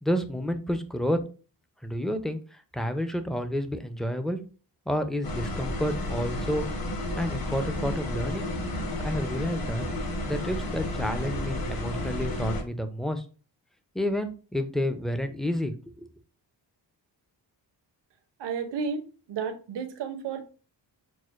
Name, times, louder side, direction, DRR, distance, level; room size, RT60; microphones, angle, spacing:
voice 1, 0.0-1.2 1.8-4.4 4.9-6.7 7.2-8.5 9.0-9.9 10.3-13.2 13.9-16.1, equal, ahead, 0.5 m, -30 dB
sound 1, 5.2-12.6, left 1 dB, 55° left, 1.2 m, -32 dB
voice 2, 18.4-19.0 19.3-20.4, right 6 dB, 70° right, 0.7 m, -32 dB
6.2 x 2.1 x 2.5 m
cardioid pair, 80°, 43 cm